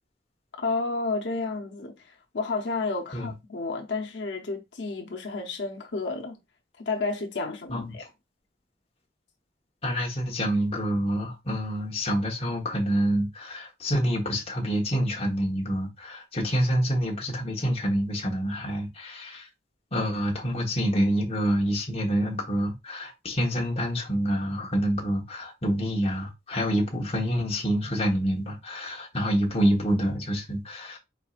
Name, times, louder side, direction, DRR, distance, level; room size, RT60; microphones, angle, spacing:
voice 1, 0.6-6.4 6.8-8.0, left 3 dB, 80° left, 0.8 m, -31 dB
voice 2, 9.8-19.5 19.9-31.0, equal, 35° left, 1.2 m, -27 dB
4.5 x 4.2 x 2.4 m
head